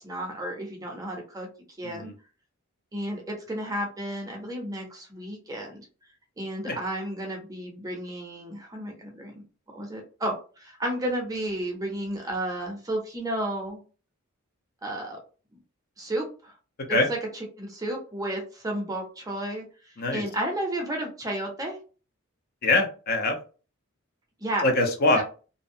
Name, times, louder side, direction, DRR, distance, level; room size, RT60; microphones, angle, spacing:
voice 1, 0.0-1.5 1.8-2.1 2.9-5.9 6.4-9.4 9.7-13.8 14.8-15.2 16.0-16.5 16.9-17.2 17.6-21.8 24.4-24.7 25.2-25.3, right 1 dB, 15° right, 1 dB, 0.6 m, -32 dB
voice 2, 22.6-23.3 24.6-25.2, left 2 dB, 45° left, 3 dB, 0.6 m, -23 dB
2.6 x 2.0 x 2.5 m, 0.35 s
head